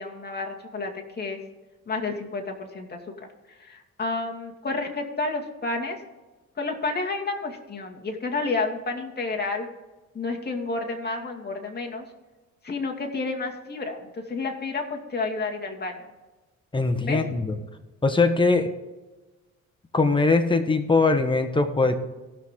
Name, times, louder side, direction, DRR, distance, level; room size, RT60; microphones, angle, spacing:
voice 1, 0.0-1.4 1.9-3.3 3.6-6.0 6.6-9.7 10.1-12.1 12.6-16.1 17.0-17.2, left 3 dB, 35° left, 1 dB, 2.2 m, -30 dB
voice 2, 16.7-17.6 18.0-18.7 19.9-21.9, left 3 dB, 15° left, 7 dB, 1.3 m, -21 dB
16.5 x 6.2 x 3.8 m, 1.2 s
cardioid pair, 90°, 30 cm